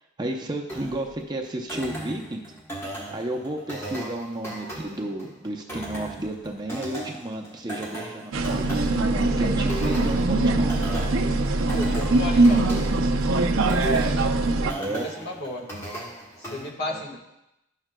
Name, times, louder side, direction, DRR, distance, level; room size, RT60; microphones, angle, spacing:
voice 1, 0.2-2.4 3.1-11.1 14.8-15.3 16.9-17.0, right 1 dB, 20° right, 1 dB, 0.6 m, -32 dB
sound 1, 0.7-16.7, right 1 dB, 15° left, 1.1 m, -37 dB
sound 2, 8.3-14.7, right 2 dB, 85° right, 0.6 m, -22 dB
voice 2, 11.7-12.8 14.8-15.7 16.4-17.2, left 1 dB, 55° left, 0 dB, 1.4 m, -34 dB
12.0 x 6.1 x 2.2 m, 0.87 s
head